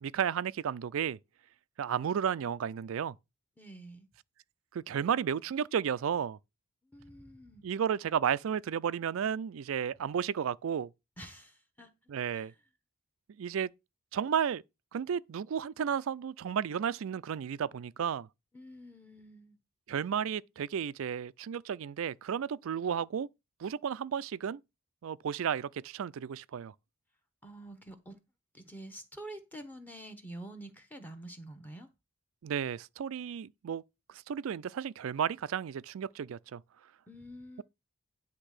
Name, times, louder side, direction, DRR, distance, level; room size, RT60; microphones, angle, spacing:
voice 1, 0.0-1.2 1.8-3.2 4.7-6.4 7.6-10.9 12.1-12.5 13.4-13.7 14.1-14.6 14.9-18.3 19.9-23.3 23.6-24.6 25.0-26.7 32.4-33.8 34.1-36.6, right 8 dB, 65° right, 0.3 m, -33 dB
voice 2, 3.6-4.1 6.8-7.7 11.2-11.9 12.3-12.6 18.5-19.6 27.4-28.2 28.5-31.9 37.1-37.6, right 1 dB, 10° left, 0.9 m, -48 dB
9.9 x 3.5 x 6.5 m
head